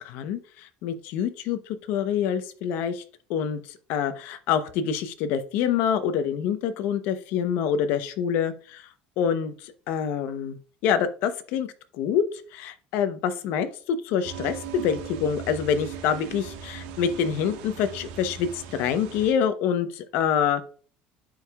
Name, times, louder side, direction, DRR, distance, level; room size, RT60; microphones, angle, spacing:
voice 1, 0.0-3.0 3.3-8.9 9.2-11.7 12.0-12.2 12.5-20.6, left 8 dB, 65° left, 10 dB, 0.8 m, -26 dB
sound 1, 14.2-19.3, right 7 dB, 80° right, 1.3 m, -39 dB
10.5 x 4.8 x 2.3 m, 0.41 s
cardioid pair, 140°, 3 cm